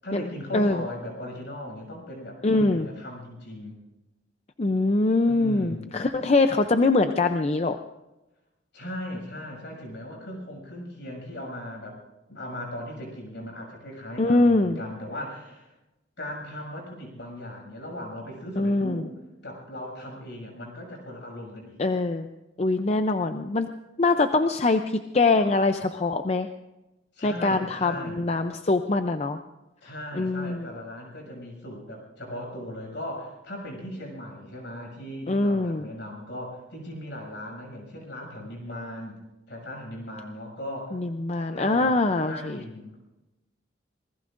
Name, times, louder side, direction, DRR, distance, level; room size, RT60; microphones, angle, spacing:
voice 1, 0.0-3.7 5.2-6.1 8.7-12.0 12.3-15.7 16.2-19.1 19.4-21.8 27.1-28.2 29.8-39.2 39.5-41.0 41.6-43.0, left 1 dB, 65° left, 1 dB, 6.7 m, -38 dB
voice 2, 2.4-2.9 4.6-7.8 14.2-14.8 18.6-19.0 21.8-22.3 22.6-23.7 24.0-26.5 27.2-29.4 30.2-30.7 35.3-35.9 40.9-42.6, left 3 dB, 35° left, 7 dB, 0.5 m, -23 dB
26.0 x 20.0 x 2.6 m, 1.0 s
head